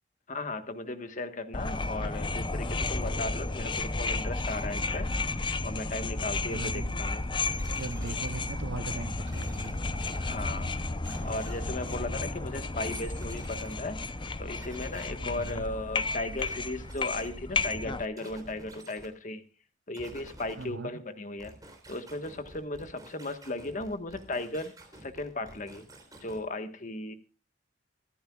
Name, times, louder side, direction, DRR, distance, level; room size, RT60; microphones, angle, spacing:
voice 1, 0.3-5.1 5.6-7.2 10.1-10.9 11.2-14.0 14.4-19.4 19.9-21.5 21.9-24.7 25.0-25.9 26.2-27.2, left 2 dB, 45° left, 1.4 m, -36 dB
sound 1, 1.5-18.1, left 3 dB, 25° left, 0.6 m, -33 dB
voice 2, 6.5-7.0 7.6-9.7 15.2-15.7 20.6-21.0, right 3 dB, 75° right, 0.8 m, -40 dB
sound 2, 7.5-8.4 9.3-10.2 11.0-11.9 12.8-13.7 14.6-15.5 16.4-17.3 18.2-19.1 19.9-20.7 21.4-26.4, right 1 dB, 20° right, 3.4 m, -50 dB
25.0 x 10.0 x 2.4 m
head